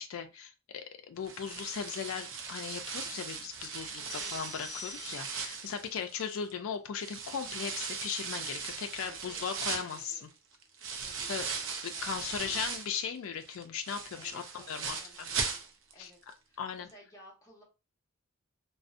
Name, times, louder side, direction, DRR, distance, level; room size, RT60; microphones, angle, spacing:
voice 1, 0.0-10.3 11.3-11.5 11.8-15.3 16.0-16.1 16.6-16.9, left 7 dB, 65° left, 7 dB, 0.3 m, -38 dB
sound 1, 1.2-6.5 7.0-13.0 13.4-16.0 16.3-16.4 16.9-17.0, right 5 dB, 60° right, 0.4 m, -39 dB
voice 2, 4.0-4.4 8.9-10.3 11.0-12.7 14.2-16.2 16.5-17.6, equal, 15° left, -3 dB, 0.7 m, -58 dB
sound 2, 4.1-5.6, left 7 dB, 50° left, 0.8 m, -47 dB
2.5 x 2.0 x 2.4 m, 0.29 s
head